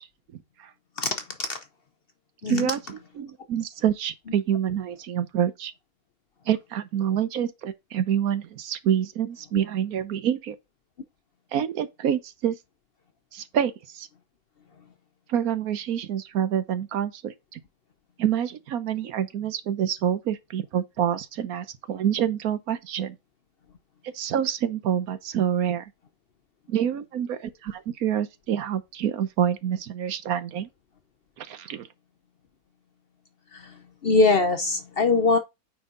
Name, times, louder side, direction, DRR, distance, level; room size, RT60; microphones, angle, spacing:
voice 1, 0.3-0.7 2.4-5.7 6.5-10.6 11.5-12.6 13.3-14.1 15.3-17.6 18.2-23.2 24.0-25.9 26.7-30.7 31.4-31.9, right 9 dB, 75° right, 1.3 m, -27 dB
voice 2, 1.0-1.6 2.4-2.7 33.5-35.4, left 3 dB, 50° left, 0.8 m, -23 dB
9.1 x 4.2 x 3.8 m
omnidirectional pair, 1.6 m